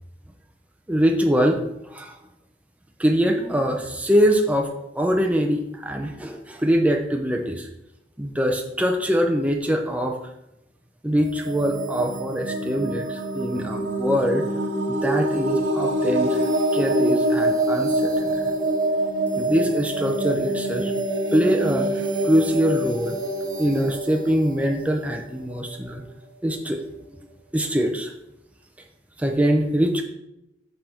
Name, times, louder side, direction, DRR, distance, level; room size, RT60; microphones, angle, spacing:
voice 1, 0.9-1.6 1.9-2.1 3.0-4.7 5.0-7.7 8.2-10.2 11.0-14.4 14.9-16.4 16.7-18.5 19.4-20.9 21.3-21.9 22.2-23.2 23.6-26.0 26.4-26.8 27.5-28.1 29.2-30.0, equal, 10° right, 2 dB, 0.6 m, -23 dB
sound 1, 11.2-25.9, right 1 dB, 75° right, 1.2 m, -25 dB
6.7 x 5.8 x 4.4 m, 0.87 s
head